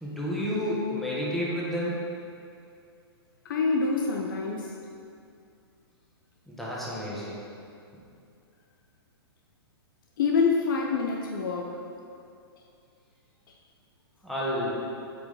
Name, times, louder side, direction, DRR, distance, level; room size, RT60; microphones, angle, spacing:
voice 1, 0.0-2.1 6.5-7.4 14.2-14.8, equal, ahead, -7 dB, 1.6 m, -30 dB
voice 2, 3.4-4.7 10.2-11.8, left 4 dB, 55° left, 1 dB, 0.7 m, -26 dB
8.3 x 4.9 x 3.7 m, 2.5 s
figure-of-eight pair, 115°, 13 cm